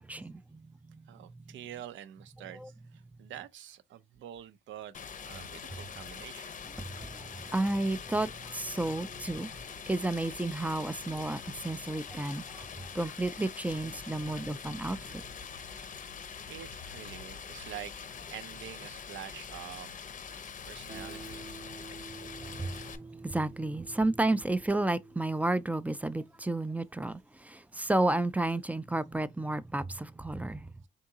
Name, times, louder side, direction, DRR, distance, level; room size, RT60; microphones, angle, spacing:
voice 1, 0.0-1.5 2.6-2.7 6.9-9.6 9.9-15.3 22.4-30.7, right 2 dB, 5° right, 0.3 m, -32 dB
voice 2, 1.1-6.6 15.4-15.5 15.8-16.0 16.3-19.9 20.7-21.4, right 11 dB, 75° right, 0.5 m, -47 dB
Stream, 4.9-23.0, left 6 dB, 40° left, 0.6 m, -44 dB
Guitar, 20.9-27.6, right 3 dB, 35° right, 0.8 m, -50 dB
3.7 x 3.6 x 2.7 m
cardioid pair, 90°, 20 cm